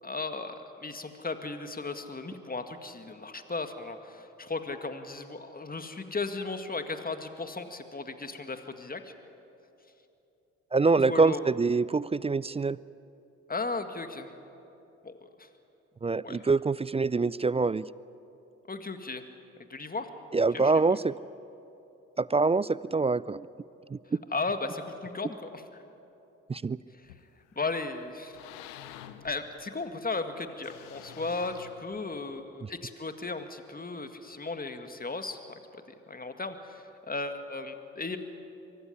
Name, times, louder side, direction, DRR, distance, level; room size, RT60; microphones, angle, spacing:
voice 1, 0.0-9.1 11.0-11.4 13.5-14.3 15.0-15.5 16.2-16.4 18.7-19.2 19.7-20.1 20.5-21.0 24.3-25.8 26.9-27.1 27.6-28.4 29.2-35.6 36.1-38.2, left 3 dB, 25° left, 8 dB, 2.0 m, -36 dB
voice 2, 10.7-12.8 16.0-17.9 20.3-21.2 22.2-23.5 23.9-24.0 26.5-26.8, right 4 dB, 20° right, 20 dB, 0.4 m, -25 dB
sound 1, 27.0-27.7 28.1-29.9 30.6-32.4, left 11 dB, 85° left, 0.8 m, -48 dB
23.5 x 14.5 x 10.0 m, 2.9 s
hypercardioid pair, 40°, 35 cm